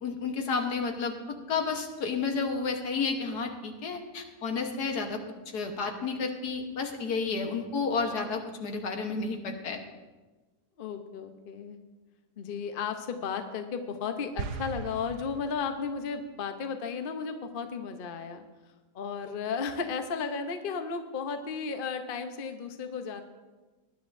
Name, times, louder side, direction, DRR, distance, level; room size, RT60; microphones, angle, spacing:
voice 1, 0.0-5.2 5.5-9.8, left 4 dB, 80° left, 4 dB, 1.7 m, -31 dB
voice 2, 10.8-11.8 12.4-18.4 18.9-23.2, left 5 dB, 45° left, 7 dB, 0.8 m, -34 dB
sound 1, 14.4-16.0, right 6 dB, 80° right, 1.3 m, -39 dB
19.5 x 10.0 x 2.6 m, 1.2 s
omnidirectional pair, 1.7 m